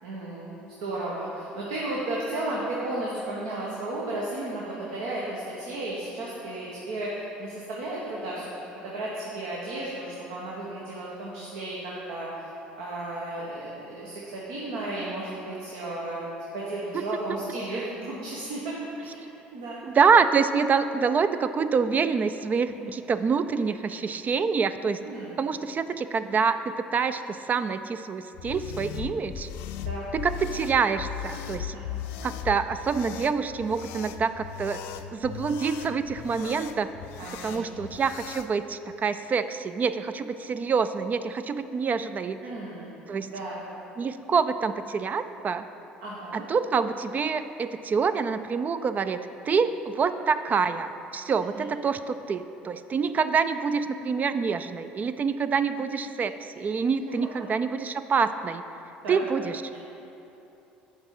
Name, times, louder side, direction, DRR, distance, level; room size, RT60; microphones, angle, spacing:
voice 1, 0.0-8.4 8.7-12.5 12.8-16.3 16.5-18.7 19.0-19.8 22.8-22.9 25.0-25.4 29.8-30.0 31.7-32.0 37.2-37.8 42.4-42.9 43.3-43.6 46.0-46.4 51.5-51.6 59.0-59.2, right 2 dB, 75° right, -5 dB, 1.2 m, -34 dB
voice 2, 19.8-25.1 25.4-29.5 30.1-31.8 32.2-34.8 35.1-36.9 37.4-42.5 43.1-43.3 44.0-45.7 46.3-58.6 59.1-59.6, right 5 dB, 35° right, 11 dB, 0.3 m, -26 dB
sound 1, 28.3-38.5, left 9 dB, 70° left, 0.4 m, -38 dB
7.2 x 4.3 x 6.5 m, 2.9 s
hypercardioid pair, 70°, 5 cm